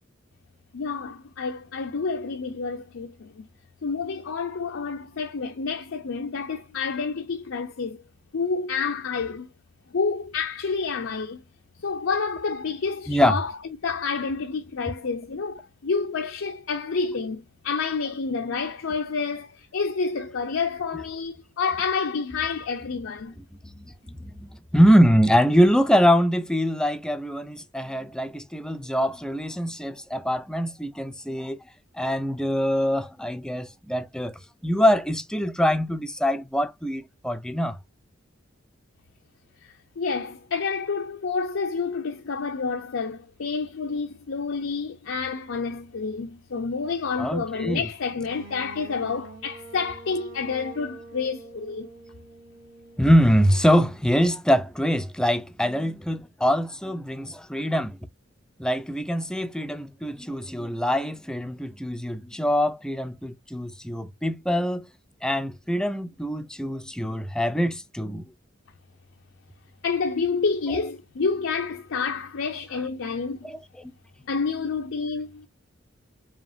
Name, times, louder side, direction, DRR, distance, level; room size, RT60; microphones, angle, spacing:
voice 1, 0.7-3.4 3.8-8.0 8.3-9.5 9.9-11.4 11.8-23.3 39.6-51.9 69.8-73.5 74.3-75.5, left 5 dB, 80° left, 0.5 m, -29 dB
voice 2, 13.1-13.4 23.6-31.6 31.9-34.3 34.6-37.8 47.2-47.8 53.0-58.0 58.6-64.9 65.2-68.3 73.4-73.9, equal, 5° left, 0.4 m, -23 dB
sound 1, 48.3-54.1, right 3 dB, 75° right, 1.7 m, -46 dB
5.0 x 2.9 x 2.4 m
head